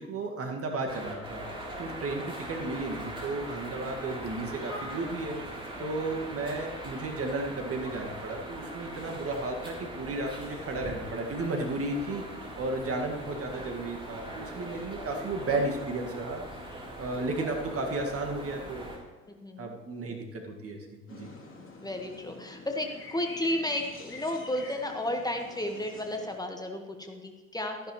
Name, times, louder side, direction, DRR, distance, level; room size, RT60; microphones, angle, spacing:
voice 1, 0.0-12.2 12.6-16.4 17.0-18.9 19.6-21.3, right 2 dB, 35° right, 2 dB, 1.9 m, -34 dB
sound 1, 0.9-19.0, right 1 dB, 15° right, 3.5 m, -41 dB
sound 2, 21.1-26.4, left 3 dB, 30° left, 3.1 m, -47 dB
voice 2, 21.8-27.9, left 1 dB, 10° left, 4 dB, 1.5 m, -33 dB
13.5 x 10.5 x 3.1 m, 1.4 s
figure-of-eight pair, 65°, 39 cm